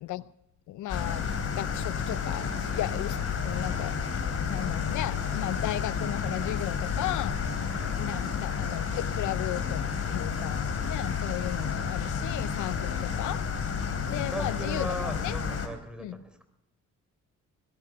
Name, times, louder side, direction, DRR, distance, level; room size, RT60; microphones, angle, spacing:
voice 1, 0.7-3.2 3.4-3.9 4.5-7.4 7.9-9.8 10.1-13.4 14.1-15.3 16.0-16.2, left 14 dB, 80° left, 0.6 m, -35 dB
sound 1, 0.9-15.7, left 6 dB, 50° left, 3.3 m, -31 dB
voice 2, 7.6-8.4 14.3-16.4, right 1 dB, 5° right, 3.7 m, -38 dB
20.5 x 12.5 x 4.8 m
cardioid pair, 90°, 30 cm